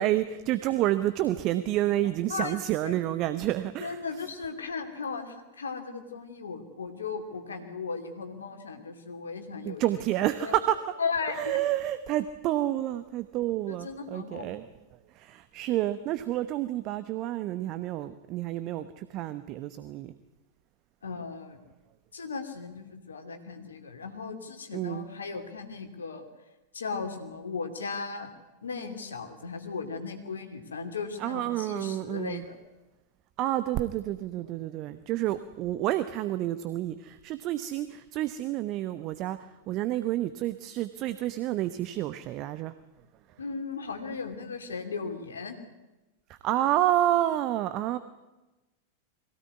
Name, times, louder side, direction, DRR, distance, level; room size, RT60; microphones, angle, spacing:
voice 1, 0.0-4.0 9.6-10.7 11.4-14.6 15.2-20.1 24.7-25.1 31.2-32.4 33.4-39.4 39.7-42.7 46.4-48.0, right 13 dB, 40° right, 12 dB, 1.0 m, -29 dB
voice 2, 2.3-2.9 3.8-9.9 10.4-10.5 11.0-11.6 13.7-14.6 21.0-21.6 22.1-26.2 26.7-28.3 28.6-32.6 43.4-45.6, left 5 dB, 70° left, 6 dB, 2.8 m, -36 dB
22.0 x 17.0 x 9.6 m, 1.1 s
figure-of-eight pair, 90°, 0 cm